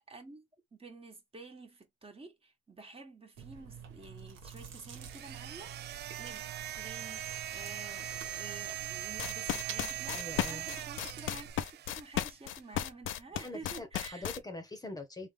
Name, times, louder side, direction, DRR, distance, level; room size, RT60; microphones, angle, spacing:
voice 1, 0.1-7.2 7.5-14.4, right 3 dB, 30° right, 1.4 m, -50 dB
Chewing mastication, 3.4-11.5, right 7 dB, 80° right, 1.2 m, -48 dB
sound 1, 5.0-12.3, right 13 dB, 55° right, 0.4 m, -41 dB
sound 2, 9.0-14.4, left 12 dB, 80° left, 0.5 m, -35 dB
voice 2, 10.1-10.7 13.3-15.3, left 2 dB, 20° left, 1.0 m, -44 dB
3.5 x 2.4 x 3.2 m
cardioid pair, 90°, 20 cm